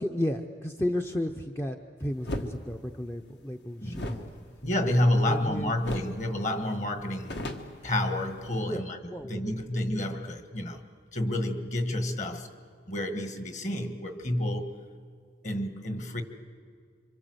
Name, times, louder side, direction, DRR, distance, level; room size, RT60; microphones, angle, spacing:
voice 1, 0.0-4.3 5.3-5.7 8.6-8.8 9.1-9.4, left 1 dB, 10° left, 4 dB, 0.6 m, -33 dB
sound 1, 2.2-2.5 3.9-5.5 5.8-6.2 6.5-6.6 6.9-8.5, left 1 dB, 65° left, 1.7 m, -37 dB
voice 2, 4.6-7.4 7.8-10.8 11.1-12.5 12.9-14.7 15.4-16.2, left 1 dB, 40° left, 7 dB, 1.7 m, -29 dB
27.0 x 25.0 x 8.0 m, 2.2 s
head